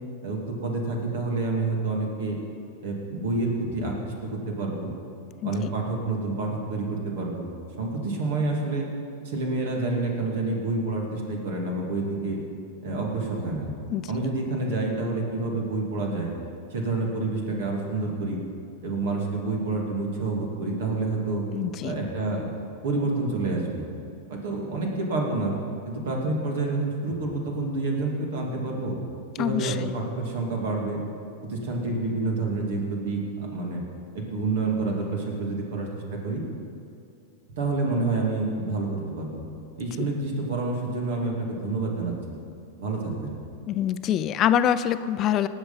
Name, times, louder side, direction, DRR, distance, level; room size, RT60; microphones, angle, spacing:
voice 1, 0.2-2.4 2.8-4.9 5.4-7.5 7.8-8.9 9.2-12.4 12.8-13.7 14.1-16.3 16.7-18.4 18.8-21.4 21.8-22.5 22.8-23.9 24.3-25.6 25.8-29.0 29.4-31.0 31.4-33.8 34.1-36.4 37.6-39.4 39.8-42.1 42.8-43.4, right 3 dB, 70° right, 0 dB, 2.7 m, -28 dB
voice 2, 21.5-21.9 29.4-29.9 43.7-45.5, left 10 dB, 40° left, 13 dB, 0.5 m, -25 dB
18.5 x 6.6 x 5.7 m, 2.5 s
hypercardioid pair, 105°, 0 cm